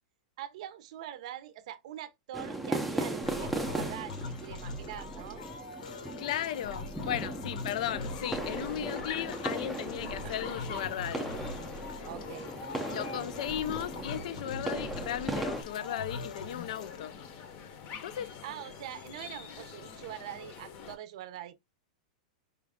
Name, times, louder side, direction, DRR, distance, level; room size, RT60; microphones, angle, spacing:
voice 1, 0.4-5.4 10.2-10.4 12.0-12.5 18.4-21.5, right 12 dB, 55° right, 0.6 m, -43 dB
sound 1, 2.3-15.6, right 1 dB, ahead, 0.5 m, -38 dB
sound 2, 3.2-17.0, left 3 dB, 85° left, 1.2 m, -42 dB
voice 2, 6.2-11.3 12.9-17.2 18.0-18.3, left 11 dB, 60° left, 0.5 m, -36 dB
sound 3, 7.8-21.0, left 6 dB, 35° left, 0.7 m, -46 dB
5.0 x 2.4 x 3.4 m
supercardioid pair, 165°, 4 cm